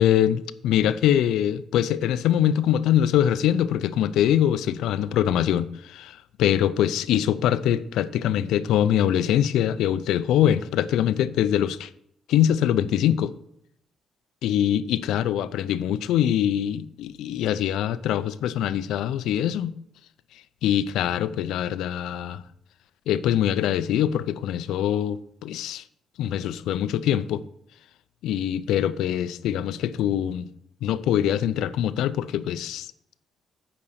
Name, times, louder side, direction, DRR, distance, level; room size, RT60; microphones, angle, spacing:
voice 1, 0.0-11.9 12.3-13.3 14.4-19.7 20.6-22.4 23.1-25.8 26.2-27.4 28.2-30.5 30.8-32.9, left 10 dB, 85° left, 0.4 m, -23 dB
8.8 x 5.2 x 6.4 m
cardioid pair, 90°, 0 cm